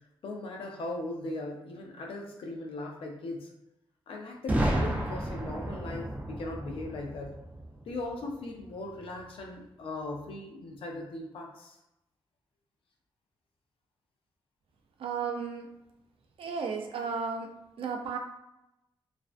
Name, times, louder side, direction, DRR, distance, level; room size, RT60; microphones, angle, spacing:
voice 1, 0.2-3.5 4.1-7.3 7.9-11.8, left 2 dB, 80° left, 1 dB, 0.5 m, -39 dB
Boom, 4.5-8.3, right 1 dB, 15° right, 0.4 m, -32 dB
voice 2, 15.0-15.7 16.4-17.5 17.8-18.2, right 5 dB, 85° right, 3 dB, 0.4 m, -33 dB
2.5 x 2.1 x 2.4 m, 0.87 s
wide cardioid pair, 180°, 9 cm